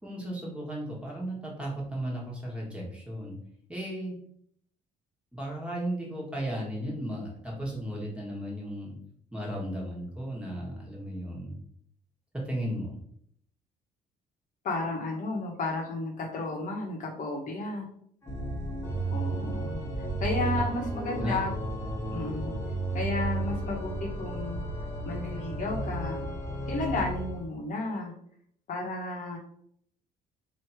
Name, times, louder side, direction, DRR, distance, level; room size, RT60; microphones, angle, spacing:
voice 1, 0.0-3.3 3.7-4.1 5.3-8.9 9.3-11.6 12.4-13.0 21.1-21.4, right 1 dB, 5° right, -4 dB, 1.5 m, -35 dB
voice 2, 14.6-17.9 19.1-19.8 20.2-21.5 22.1-22.5 22.9-24.6 25.0-26.3 26.7-28.1 28.7-29.4, left 2 dB, 50° left, 0 dB, 1.0 m, -32 dB
Organ, 18.2-27.5, right 2 dB, 15° left, 1.3 m, -33 dB
3.1 x 2.8 x 4.4 m, 0.66 s
cardioid pair, 110°, 17 cm